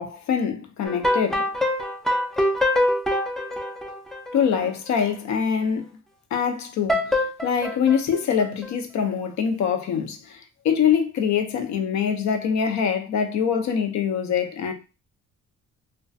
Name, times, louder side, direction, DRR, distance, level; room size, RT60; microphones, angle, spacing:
voice 1, 0.0-1.5 4.3-5.9 6.3-14.7, left 7 dB, 65° left, 0.6 m, -24 dB
sound 1, 0.9-4.6 6.9-8.7, left 1 dB, ahead, 0.4 m, -24 dB
2.3 x 2.2 x 2.6 m
cardioid pair, 90°, 30 cm